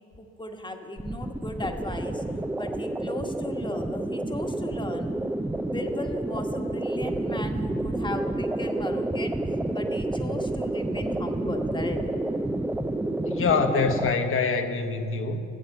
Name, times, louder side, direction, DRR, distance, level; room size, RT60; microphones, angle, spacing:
voice 1, 0.2-2.2 2.6-5.1 5.6-9.3 9.7-12.0, left 2 dB, 15° left, 4 dB, 1.3 m, -36 dB
sound 1, 1.0-14.1, right 2 dB, 5° right, 0.5 m, -29 dB
voice 2, 13.2-15.4, left 5 dB, 45° left, 7 dB, 1.2 m, -25 dB
15.0 x 7.8 x 7.9 m, 2.5 s
cardioid pair, 100°, 29 cm